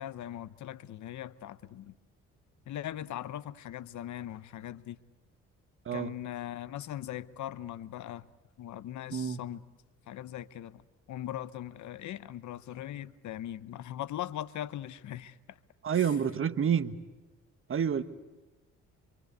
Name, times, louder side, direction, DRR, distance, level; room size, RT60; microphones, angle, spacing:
voice 1, 0.0-1.9 2.7-5.0 5.9-8.3 8.6-9.6 10.1-10.8 11.1-15.6 15.9-16.1, left 12 dB, 75° left, 1.0 m, -40 dB
voice 2, 9.1-9.4 15.8-17.0 17.7-18.0, right 8 dB, 45° right, 1.3 m, -28 dB
26.0 x 26.0 x 8.2 m
cardioid pair, 90°, 30 cm